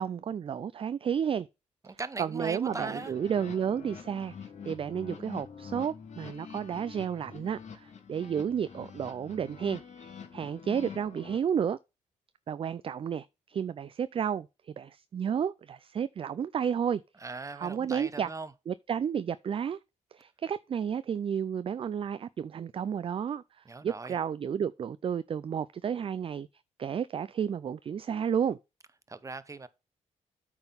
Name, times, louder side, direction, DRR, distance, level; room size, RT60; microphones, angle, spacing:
voice 1, 0.0-1.5 2.2-11.8 12.5-17.0 17.6-18.3 18.7-19.8 20.1-26.5 26.8-28.6, right 8 dB, 40° right, 0.3 m, -32 dB
voice 2, 1.8-3.1 17.2-18.5 23.6-24.2 29.1-29.7, right 3 dB, 25° right, 0.8 m, -39 dB
sound 1, 2.6-11.4, left 6 dB, 60° left, 1.5 m, -46 dB
8.9 x 3.9 x 5.6 m
cardioid pair, 70°, 14 cm